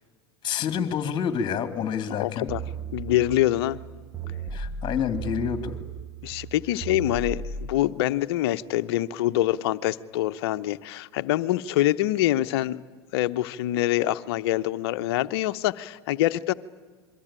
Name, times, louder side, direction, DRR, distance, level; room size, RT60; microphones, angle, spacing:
voice 1, 0.4-2.5 4.5-5.8, left 7 dB, 30° left, 9 dB, 2.8 m, -28 dB
voice 2, 2.1-2.6 2.9-3.8 6.2-12.8 13.1-16.5, left 14 dB, 65° left, 13 dB, 1.0 m, -25 dB
sound 1, 2.5-7.8, right 5 dB, 15° right, 1.4 m, -36 dB
27.0 x 23.0 x 9.0 m, 1.4 s
hypercardioid pair, 95°, 14 cm